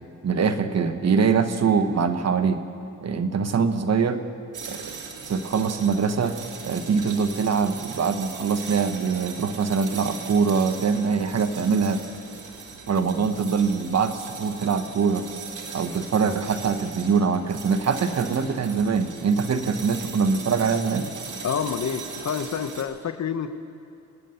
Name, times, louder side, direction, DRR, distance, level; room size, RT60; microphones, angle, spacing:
voice 1, 0.2-2.6 3.0-4.2 4.7-5.0 5.3-6.4 6.6-12.0 12.9-15.3 15.7-21.1, right 5 dB, 50° right, 9 dB, 1.1 m, -23 dB
sound 1, 4.5-22.8, right 5 dB, 65° right, 1.8 m, -39 dB
voice 2, 21.4-23.5, left 7 dB, 55° left, 11 dB, 0.9 m, -28 dB
26.0 x 9.2 x 5.7 m, 2.6 s
cardioid pair, 75°, 33 cm